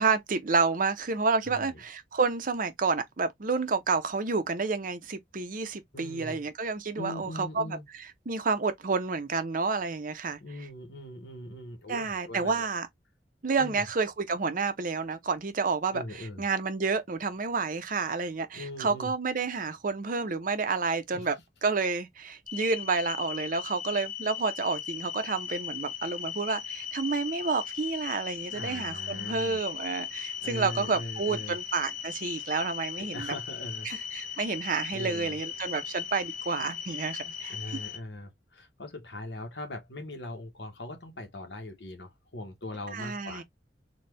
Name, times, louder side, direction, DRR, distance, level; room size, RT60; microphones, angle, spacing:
voice 1, 0.0-7.8 8.3-10.4 11.9-12.9 13.4-21.3 21.6-33.3 33.8-37.5 42.9-43.4, right 4 dB, 50° right, 0.7 m, -30 dB
voice 2, 1.5-1.8 5.9-6.4 7.0-7.8 10.4-12.7 13.6-13.8 15.9-16.5 18.5-19.1 21.1-21.3 22.5-22.6 28.5-29.6 30.4-31.6 33.0-33.9 34.2-34.4 34.9-35.4 37.5-43.4, left 1 dB, 70° left, 1.1 m, -41 dB
sound 1, 22.5-38.0, left 9 dB, 50° left, 0.8 m, -38 dB
4.1 x 2.3 x 3.3 m
head